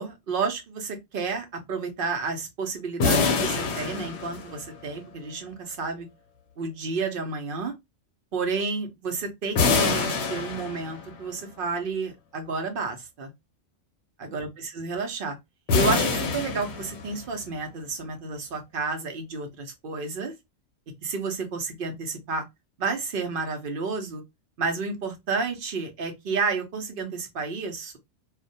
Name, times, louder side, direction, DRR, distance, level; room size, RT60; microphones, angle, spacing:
voice 1, 0.0-6.1 6.6-7.7 8.3-13.3 14.2-15.4 15.7-20.3 21.0-22.4 22.8-24.2 24.6-28.0, right 4 dB, 60° right, 0.6 m, -31 dB
sound 1, 3.0-4.9 9.6-11.2 15.7-17.3, left 4 dB, 65° left, 0.8 m, -25 dB
2.3 x 2.1 x 2.6 m
omnidirectional pair, 1.3 m